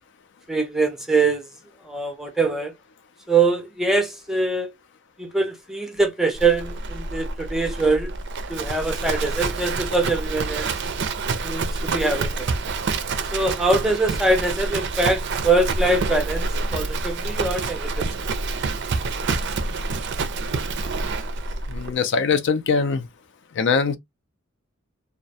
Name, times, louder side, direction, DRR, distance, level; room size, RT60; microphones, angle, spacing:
voice 1, 0.5-1.5 1.8-2.7 3.3-4.7 5.2-8.2 8.5-10.7 11.4-12.5 13.3-18.1, right 3 dB, ahead, 0.5 m, -23 dB
Livestock farm animals working animals, 6.4-21.9, right 3 dB, 55° right, 0.4 m, -27 dB
voice 2, 21.7-23.1 23.6-24.0, left 5 dB, 60° left, 0.4 m, -22 dB
2.2 x 2.1 x 2.6 m
head